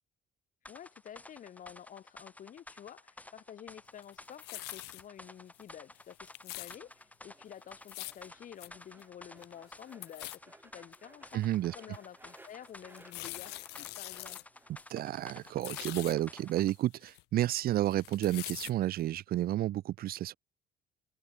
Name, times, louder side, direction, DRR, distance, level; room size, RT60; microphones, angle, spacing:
voice 1, 0.6-11.4 11.7-14.4, left 9 dB, 50° left, 2.7 m, -50 dB
sound 1, 0.6-16.8, left 1 dB, 10° left, 4.4 m, -53 dB
sound 2, 4.0-5.0 5.5-5.7 6.0-6.8 7.7-8.2 8.6-8.7 9.0-9.1 9.4-9.7 10.0-10.4 10.9-11.0 11.6-11.7 12.8-14.4 14.8-14.9 15.2-16.1 16.6-17.6 17.9-18.7 19.2-19.3, left 22 dB, 85° left, 0.4 m, -43 dB
sound 3, 6.6-16.5, right 2 dB, 10° right, 6.6 m, -62 dB
voice 2, 11.3-11.7 14.9-20.3, right 13 dB, 65° right, 0.9 m, -31 dB
cardioid pair, 110°, 17 cm